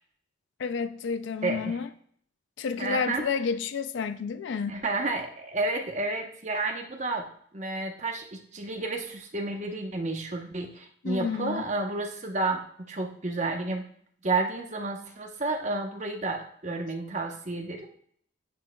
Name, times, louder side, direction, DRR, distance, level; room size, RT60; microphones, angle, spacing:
voice 1, 0.6-1.9 2.6-4.7 11.0-11.6, left 5 dB, 65° left, 0.4 m, -30 dB
voice 2, 1.4-1.8 2.8-3.3 4.7-7.3 7.5-12.6 12.9-13.8 14.2-17.8, right 2 dB, 35° right, 0.9 m, -31 dB
10.0 x 7.3 x 2.3 m
head